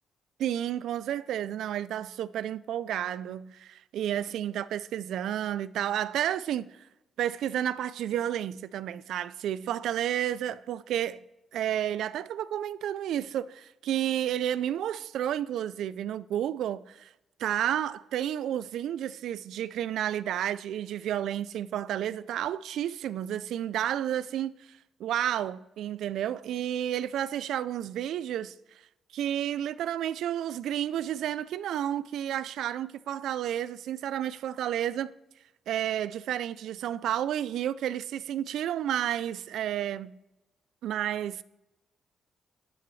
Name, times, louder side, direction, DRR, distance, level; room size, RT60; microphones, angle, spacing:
voice 1, 0.4-6.7 7.2-11.2 11.5-17.1 17.4-24.5 25.0-28.5 29.1-35.1 35.7-40.2 40.8-41.4, right 11 dB, 85° right, 0.3 m, -31 dB
12.0 x 7.6 x 3.2 m
cardioid pair, 95°, 0 cm